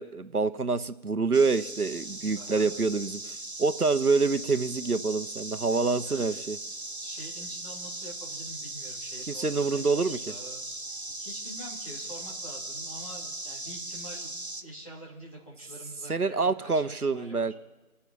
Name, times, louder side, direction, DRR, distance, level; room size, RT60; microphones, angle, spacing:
voice 1, 0.0-6.6 9.3-10.2 16.1-17.5, right 4 dB, 80° right, 12 dB, 1.2 m, -26 dB
sound 1, 1.3-14.6, right 2 dB, 45° right, 1.1 m, -39 dB
voice 2, 2.3-2.7 6.0-6.5 7.0-14.3 14.6-17.5, equal, 20° left, -5 dB, 3.1 m, -46 dB
29.5 x 10.0 x 4.2 m, 1.1 s
figure-of-eight pair, 180°, 44 cm